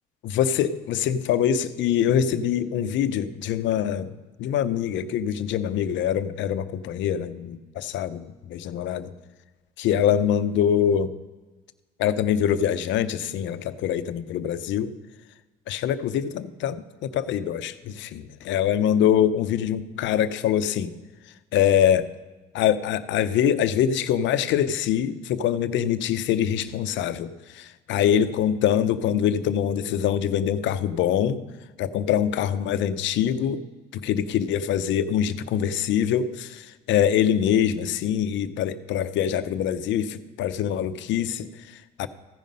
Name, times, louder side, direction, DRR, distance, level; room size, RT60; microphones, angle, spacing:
voice 1, 0.2-4.1 4.4-9.1 9.8-11.1 12.0-14.9 15.7-20.9 21.5-22.1 22.5-31.4 31.8-33.6 33.9-42.1, left 9 dB, 65° left, 13 dB, 0.6 m, -24 dB
15.0 x 5.3 x 5.3 m, 1.2 s
supercardioid pair, 70°, 21 cm